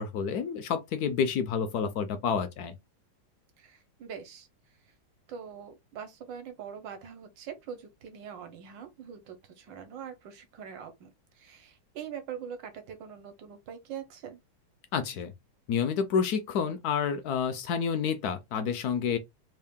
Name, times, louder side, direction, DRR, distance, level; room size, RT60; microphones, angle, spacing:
voice 1, 0.0-2.7 14.9-15.3 15.7-19.2, left 6 dB, 70° left, 0.9 m, -29 dB
voice 2, 3.6-4.8 5.3-14.4, right 8 dB, 70° right, 1.5 m, -43 dB
3.6 x 2.4 x 3.5 m
omnidirectional pair, 2.1 m